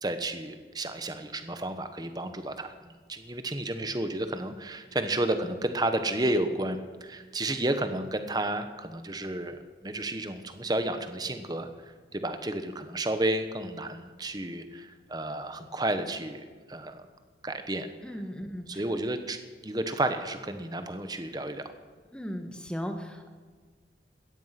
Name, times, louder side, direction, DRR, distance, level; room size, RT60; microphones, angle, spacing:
voice 1, 0.0-11.7 12.1-17.0 17.4-17.9 18.4-19.4 19.6-21.6, right 1 dB, 20° right, 9 dB, 1.2 m, -32 dB
voice 2, 18.0-18.8 22.1-23.3, equal, 5° left, 5 dB, 1.4 m, -37 dB
17.5 x 13.5 x 5.9 m, 1.5 s
head